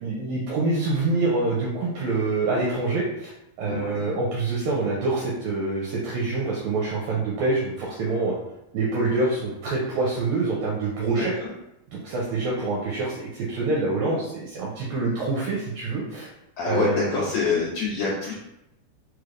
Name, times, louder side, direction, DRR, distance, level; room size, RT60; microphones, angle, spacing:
voice 1, 0.0-3.3 3.6-8.3 8.7-11.3 11.9-16.3 16.7-17.3, right 3 dB, 75° right, -5 dB, 1.9 m, -26 dB
voice 2, 3.7-4.0 11.1-11.5 16.6-18.3, left 5 dB, 75° left, -5 dB, 1.6 m, -26 dB
4.5 x 3.2 x 2.5 m, 0.87 s
omnidirectional pair, 3.6 m